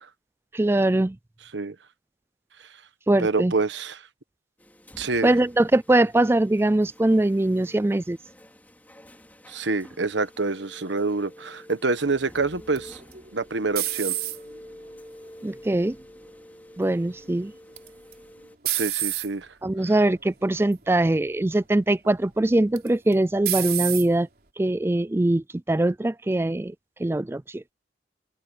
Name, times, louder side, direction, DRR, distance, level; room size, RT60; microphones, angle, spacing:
voice 1, 0.5-1.2 3.1-3.5 5.2-8.2 15.4-16.0 16.8-17.5 19.6-24.3 24.6-26.7 27.0-27.6, right 1 dB, 15° right, 0.3 m, -22 dB
voice 2, 3.2-4.0 5.0-5.3 9.5-13.0 13.3-14.1 18.6-19.5, right 3 dB, 80° right, 1.3 m, -26 dB
sound 1, 4.6-18.6, left 1 dB, 10° left, 3.6 m, -48 dB
sound 2, 12.8-14.7 15.2-15.7 17.8-18.1 18.7-19.3 20.1-20.3 20.7-20.8 22.8-23.1 23.5-24.1, right 14 dB, 55° right, 3.4 m, -28 dB
open air
head